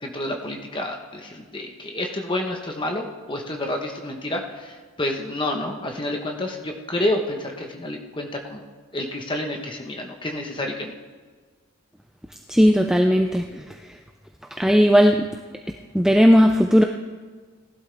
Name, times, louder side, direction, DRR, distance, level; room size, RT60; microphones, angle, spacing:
voice 1, 0.0-8.6 8.9-10.9, left 1 dB, 20° left, 2 dB, 1.3 m, -29 dB
voice 2, 12.5-13.6 14.6-15.3 15.9-16.8, equal, 5° right, 3 dB, 0.4 m, -16 dB
18.5 x 11.5 x 3.5 m, 1.5 s
head